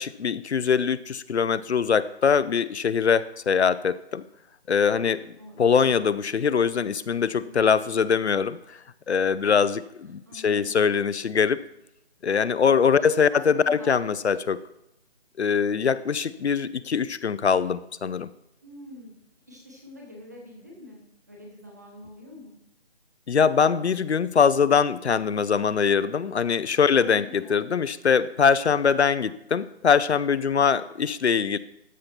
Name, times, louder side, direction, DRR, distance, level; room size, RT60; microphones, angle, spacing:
voice 1, 0.0-4.2 4.7-5.2 5.6-8.8 9.1-11.6 12.2-14.6 15.4-18.3 23.3-31.6, left 6 dB, 75° left, 15 dB, 0.6 m, -22 dB
voice 2, 7.4-7.7 9.3-9.5 10.3-10.8 13.0-14.1 18.6-19.1 19.5-21.0 21.3-22.5 26.9-27.6, left 1 dB, 15° right, -1 dB, 1.2 m, -45 dB
13.5 x 5.7 x 4.4 m, 0.84 s
figure-of-eight pair, 175°, 33 cm